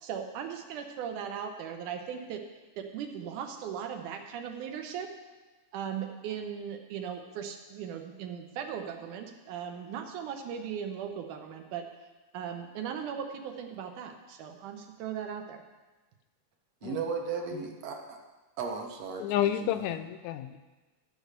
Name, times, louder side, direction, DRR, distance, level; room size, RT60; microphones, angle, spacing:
voice 1, 0.0-2.4 2.8-5.1 5.7-11.9 12.3-15.6, right 8 dB, 85° right, 4 dB, 2.5 m, -38 dB
voice 2, 16.8-18.2 18.6-19.8, right 5 dB, 65° right, 3 dB, 1.9 m, -36 dB
voice 3, 19.2-20.6, left 11 dB, 80° left, 10 dB, 1.8 m, -30 dB
13.0 x 5.0 x 6.7 m, 1.2 s
omnidirectional pair, 3.5 m